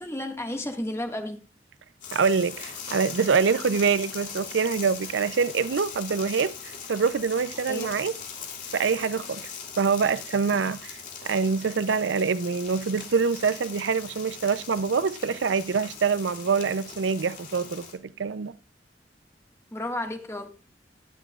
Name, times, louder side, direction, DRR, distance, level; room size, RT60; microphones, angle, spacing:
voice 1, 0.0-1.4 7.7-7.9 19.7-20.5, left 1 dB, 15° left, 1.7 m, -32 dB
sound 1, 2.0-18.0, left 6 dB, 45° left, 3.1 m, -40 dB
voice 2, 2.1-8.1 8.7-9.5 9.8-18.5, right 5 dB, 80° right, 0.5 m, -25 dB
19.0 x 8.3 x 2.4 m
head